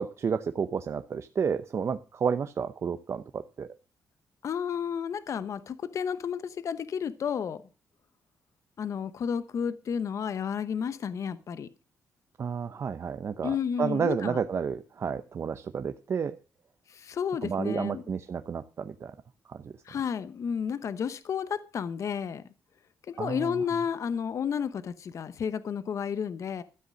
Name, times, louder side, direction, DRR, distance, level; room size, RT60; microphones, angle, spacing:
voice 1, 0.0-3.7 12.4-16.4 17.4-19.1 19.5-19.7 23.2-23.6, right 6 dB, 50° right, 0.7 m, -31 dB
voice 2, 4.4-7.6 8.8-11.7 13.4-14.4 16.9-18.0 19.9-22.4 23.1-26.6, left 7 dB, 60° left, 0.9 m, -32 dB
13.0 x 8.0 x 6.3 m
cardioid pair, 105°, 6 cm